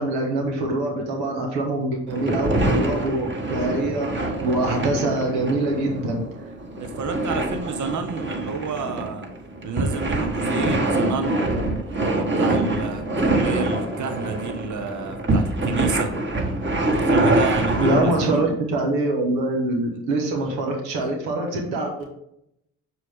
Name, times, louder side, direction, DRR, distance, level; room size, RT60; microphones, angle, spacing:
voice 1, 0.0-6.2 17.8-22.0, right 2 dB, 80° right, 0 dB, 1.6 m, -24 dB
sound 1, 2.1-18.4, right 2 dB, 30° right, 1.6 m, -24 dB
voice 2, 6.8-9.3 9.6-11.4 11.9-16.1 16.9-18.4 20.4-20.5, right 5 dB, 50° right, 6 dB, 1.0 m, -30 dB
6.2 x 4.7 x 3.6 m, 0.75 s
hypercardioid pair, 45°, 39 cm